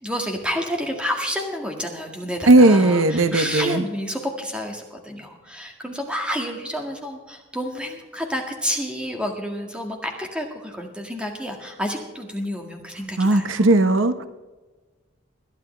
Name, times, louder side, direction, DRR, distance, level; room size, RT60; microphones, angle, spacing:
voice 1, 0.0-13.5, equal, 5° right, 2 dB, 1.9 m, -29 dB
voice 2, 2.5-3.8 13.2-14.2, right 2 dB, 85° right, 10 dB, 0.8 m, -16 dB
21.0 x 11.5 x 3.3 m, 1.2 s
head